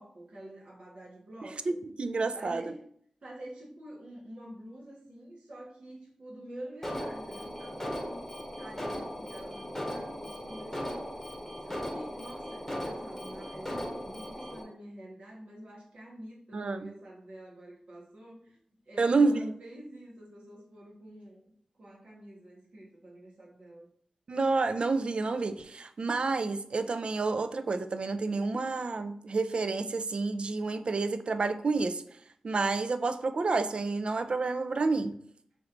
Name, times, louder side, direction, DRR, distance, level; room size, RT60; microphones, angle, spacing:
voice 1, 0.0-1.8 2.3-2.9 3.2-8.3 8.6-11.1 11.6-18.6 18.8-23.9, right 1 dB, 80° right, -5 dB, 1.4 m, -47 dB
voice 2, 1.7-2.6 16.5-16.9 19.0-19.5 24.3-32.0 32.4-35.1, right 3 dB, 60° right, 11 dB, 0.3 m, -29 dB
Alarm, 6.8-14.6, equal, 15° left, 0.9 m, -38 dB
3.2 x 3.0 x 3.8 m, 0.63 s
cardioid pair, 60°, 2 cm